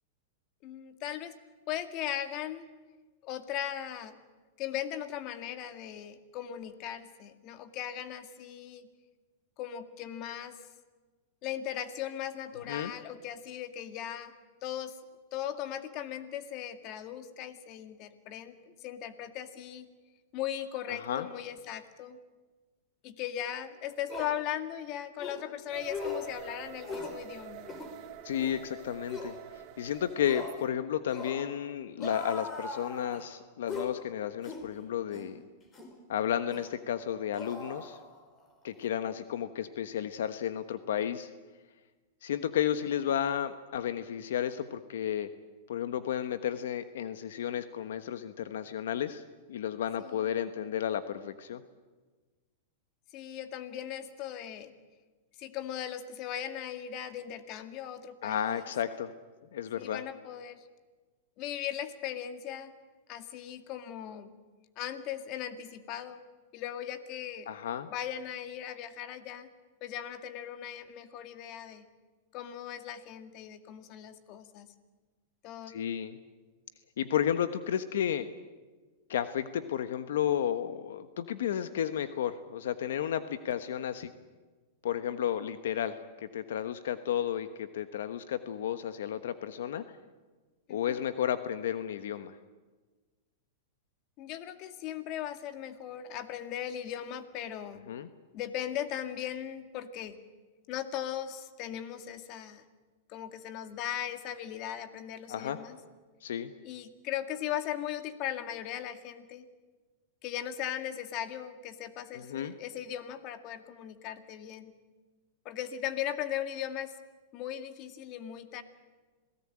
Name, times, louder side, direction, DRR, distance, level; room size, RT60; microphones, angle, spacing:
voice 1, 0.6-1.3 1.7-2.7 3.2-4.2 4.6-8.9 9.6-10.6 11.4-14.3 14.6-15.0 15.3-18.6 18.8-19.9 20.3-22.2 23.0-27.7 50.0-50.2 53.1-54.7 55.4-58.7 59.8-60.7 61.4-62.7 63.1-64.3 64.8-66.2 66.5-67.5 67.9-69.5 69.8-71.9 72.3-74.7 75.4-75.7 90.7-91.0 94.2-97.9 98.3-100.2 100.7-102.6 103.1-105.8 106.6-109.5 110.2-114.7 115.4-116.9 117.3-118.6, left 10 dB, 40° left, 9 dB, 2.1 m, -38 dB
voice 2, 20.9-21.2 28.2-29.4 29.8-35.4 36.1-38.0 38.6-41.3 42.2-45.3 45.7-49.2 49.5-51.6 58.2-59.1 59.5-60.0 67.5-67.9 75.7-76.2 77.0-78.3 79.1-84.1 84.8-89.8 90.7-92.3 97.9-98.1 105.3-105.6 106.2-106.5 112.1-112.5, left 9 dB, 80° left, 11 dB, 1.2 m, -32 dB
sound 1, 23.4-23.5 24.1-24.4 25.2-25.4 25.9-26.3 26.8-27.2 27.6-27.9 28.4-28.6 29.1-29.3 30.2-30.6 31.1-31.5 32.0-33.2 33.7-33.9 34.4-34.7 35.1-35.3 35.7-35.9 36.5-36.7 37.3-38.4 38.7-38.9, left 4 dB, 25° left, 5.3 m, -40 dB
sound 2, 25.7-30.6, right 13 dB, 45° right, 2.1 m, -47 dB
27.0 x 18.0 x 8.8 m, 1.3 s
hypercardioid pair, 135°, 0 cm